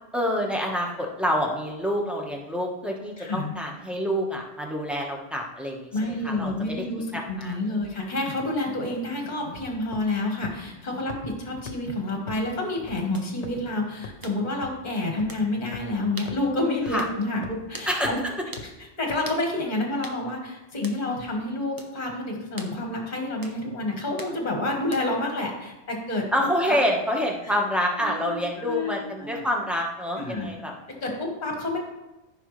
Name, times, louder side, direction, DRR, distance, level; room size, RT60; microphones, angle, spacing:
voice 1, 0.1-5.9 6.2-6.8 7.1-7.8 16.9-17.0 17.9-18.3 26.3-30.7, equal, ahead, 0 dB, 1.2 m, -27 dB
voice 2, 3.2-3.5 5.9-18.2 18.8-26.3 26.7-26.8 27.4-27.5 28.0-29.5 30.1-30.5 30.9-31.8, left 2 dB, 35° left, 1 dB, 1.6 m, -29 dB
sound 1, 9.9-10.2 10.4-10.5 11.1-11.2 11.7-11.8 12.3-12.4 12.9-13.0 13.4-13.7 14.0-14.1 14.6-14.7 15.2-15.3 15.7-15.8 16.3-16.4 16.9-17.0 17.4-17.7 18.0-18.1 18.6-18.7 19.1-19.2, left 3 dB, 65° left, 1.1 m, -38 dB
sound 2, 13.1-13.3 14.2-14.4 15.3-15.5 16.2-16.4 17.0-17.2 17.7-17.9 18.5-18.7 19.2-19.4 20.0-20.2 20.8-21.0 21.8-21.9 22.6-22.8 23.4-23.6 24.2-24.4 24.9-25.2, right 1 dB, 20° right, 0.8 m, -40 dB
14.5 x 5.6 x 3.3 m, 1.0 s
omnidirectional pair, 1.3 m